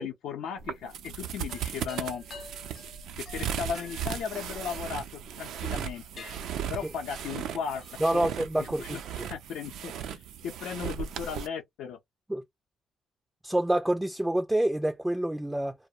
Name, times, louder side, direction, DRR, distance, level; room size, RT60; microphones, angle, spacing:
voice 1, 0.0-2.2 3.2-6.3 6.7-7.8 8.1-8.3 8.6-12.0, left 7 dB, 85° left, 0.5 m, -36 dB
sound 1, 0.6-11.5, right 9 dB, 80° right, 0.4 m, -37 dB
sound 2, 1.5-5.2 5.7-5.9 6.2-8.1, left 4 dB, 50° left, 0.7 m, -49 dB
voice 2, 8.0-9.0 12.3-12.4 13.4-15.7, right 1 dB, 10° right, 0.3 m, -27 dB
2.3 x 2.0 x 2.7 m
cardioid pair, 90°, 0 cm